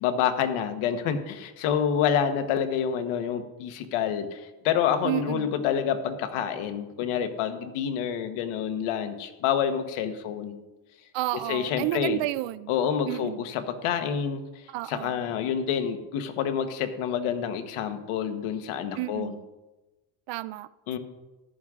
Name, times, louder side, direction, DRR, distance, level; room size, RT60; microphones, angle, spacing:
voice 1, 0.0-10.6 11.5-12.2 12.7-14.4 14.8-19.3 20.9-21.0, left 8 dB, 80° left, 8 dB, 1.4 m, -28 dB
voice 2, 5.0-5.5 11.1-12.7 13.1-13.4 14.7-15.2 19.0-19.4 20.3-20.7, right 16 dB, 65° right, 17 dB, 0.5 m, -31 dB
14.0 x 11.0 x 3.7 m, 1.1 s
cardioid pair, 160°, 49 cm